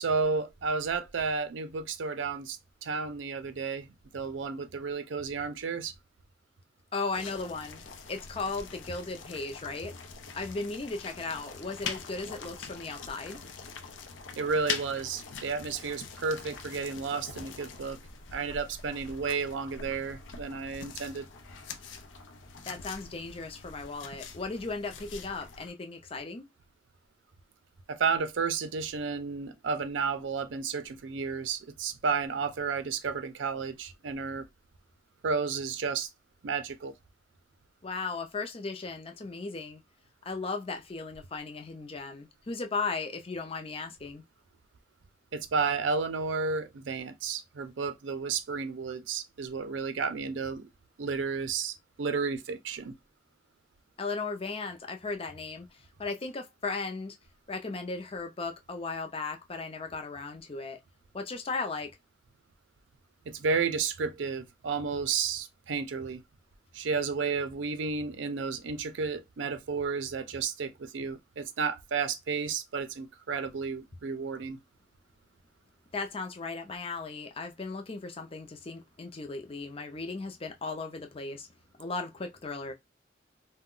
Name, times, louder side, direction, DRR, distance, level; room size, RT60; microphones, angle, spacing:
voice 1, 0.0-3.9 4.1-5.9 14.4-18.0 18.3-21.3 27.9-34.4 35.2-36.1 36.4-36.9 45.3-50.7 51.0-52.9 63.3-66.2 66.7-74.6, right 5 dB, 85° right, 0.5 m, -32 dB
voice 2, 6.9-7.8 8.1-9.9 10.3-13.4 22.7-26.5 37.8-39.8 40.3-44.2 54.0-55.7 56.0-57.2 57.5-60.8 61.1-61.9 75.9-81.5 81.8-82.7, left 3 dB, 30° left, 0.5 m, -36 dB
sound 1, 7.1-25.7, left 5 dB, 90° left, 0.5 m, -43 dB
2.3 x 2.1 x 3.7 m
head